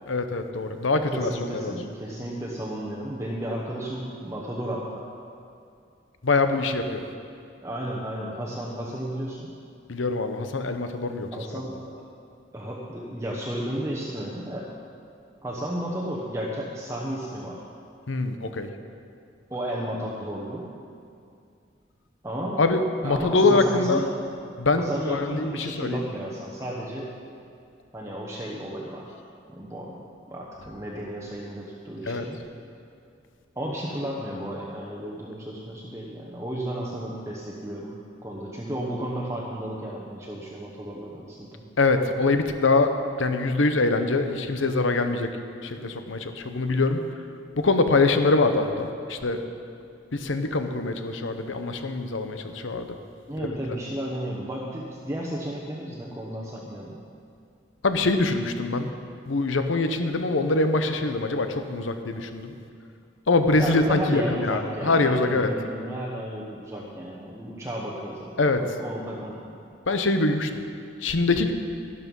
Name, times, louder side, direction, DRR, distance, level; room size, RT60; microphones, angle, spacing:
voice 1, 0.1-1.7 6.2-7.0 9.9-11.6 18.1-18.7 22.6-24.0 24.6-26.0 32.1-32.2 41.8-42.9 43.2-45.3 45.6-47.0 47.6-49.4 50.1-52.9 53.4-53.6 57.8-58.9 59.3-62.5 63.3-65.5 68.4-68.6 69.9-70.5 71.0-71.5, left 3 dB, 85° left, 8 dB, 0.9 m, -24 dB
voice 2, 1.1-5.0 7.6-9.5 11.3-12.0 12.5-14.7 15.4-17.6 19.5-20.7 22.2-22.6 23.0-24.1 24.8-27.1 27.9-29.1 29.5-32.4 33.6-38.0 38.2-41.6 53.3-57.0 63.6-69.6, right 1 dB, 15° right, -4 dB, 1.0 m, -33 dB
12.5 x 12.0 x 5.4 m, 2.4 s
head